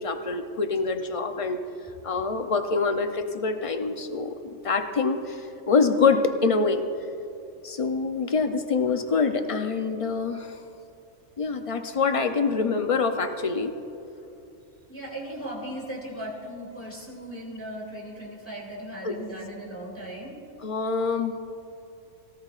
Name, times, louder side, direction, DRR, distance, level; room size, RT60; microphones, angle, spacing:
voice 1, 0.0-1.6 2.0-6.8 7.6-10.6 11.4-13.7 19.0-19.2 20.6-21.3, left 4 dB, 60° left, 7 dB, 0.3 m, -25 dB
voice 2, 14.9-20.4, right 1 dB, 10° left, -3 dB, 2.3 m, -37 dB
18.0 x 16.5 x 2.4 m, 2.8 s
omnidirectional pair, 1.4 m